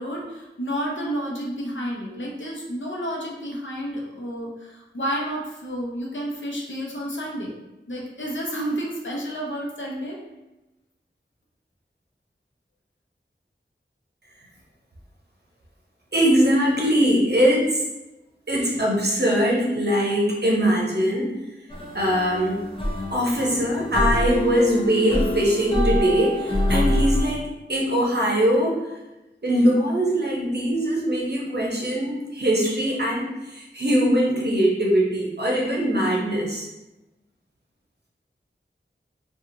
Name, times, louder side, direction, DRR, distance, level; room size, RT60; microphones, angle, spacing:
voice 1, 0.0-7.5 7.9-10.2, equal, 70° left, -2 dB, 0.7 m, -30 dB
voice 2, 16.1-17.8 18.5-21.3 21.9-22.6 23.1-28.8 29.4-36.7, equal, 55° right, -3 dB, 0.7 m, -22 dB
sound 1, 21.7-27.2, left 1 dB, 25° left, 0.5 m, -25 dB
2.8 x 2.3 x 2.7 m, 1.0 s
wide cardioid pair, 45°, 20 cm